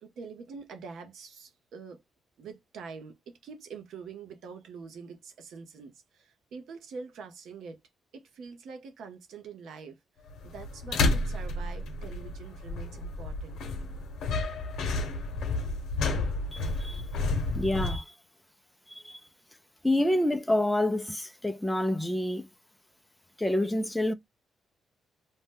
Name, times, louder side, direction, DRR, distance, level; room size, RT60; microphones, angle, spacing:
voice 1, 0.0-2.0 2.4-7.8 8.1-10.0 10.4-13.6, right 5 dB, 75° right, 0.8 m, -45 dB
sound 1, 10.3-18.0, left 3 dB, 85° left, 0.8 m, -31 dB
voice 2, 16.5-17.1 17.5-18.1 18.9-19.2 19.8-22.5 23.4-24.1, left 1 dB, 5° left, 0.4 m, -28 dB
2.7 x 2.2 x 3.3 m
cardioid pair, 95°, 0 cm